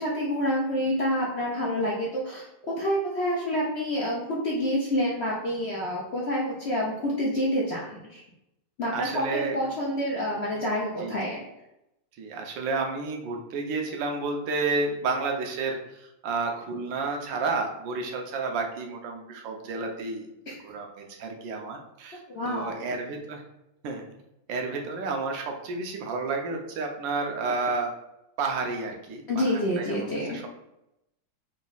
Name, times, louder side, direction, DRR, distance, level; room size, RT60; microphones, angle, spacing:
voice 1, 0.0-8.2 8.8-11.4 20.5-20.6 22.3-22.9 29.3-30.4, equal, 60° left, -4 dB, 0.7 m, -28 dB
voice 2, 8.9-9.6 11.0-11.1 12.2-20.3 20.6-22.2 22.4-23.4 23.8-24.0 24.5-27.9 28.4-30.5, right 3 dB, 85° right, 2 dB, 1.4 m, -31 dB
4.0 x 2.3 x 3.9 m, 0.87 s
omnidirectional pair, 2.0 m